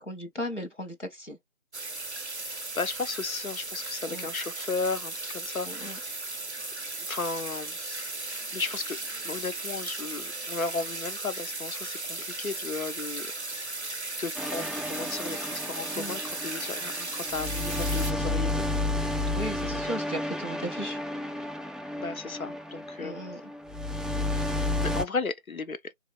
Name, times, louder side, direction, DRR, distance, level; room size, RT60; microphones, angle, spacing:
voice 1, 0.0-1.4 4.1-4.3 5.7-6.0 15.9-16.1 19.3-21.0 23.0-23.4, equal, 60° left, 1.2 m, -36 dB
sound 1, 1.7-18.1, right 2 dB, 55° right, 0.5 m, -36 dB
voice 2, 2.4-6.1 7.1-8.2 8.5-9.0 9.2-13.7 14.2-18.7 22.0-23.2 24.3-25.9, left 4 dB, 80° left, 0.8 m, -35 dB
sound 2, 14.4-25.1, left 2 dB, ahead, 0.3 m, -32 dB
3.6 x 2.7 x 2.4 m
figure-of-eight pair, 175°, 41 cm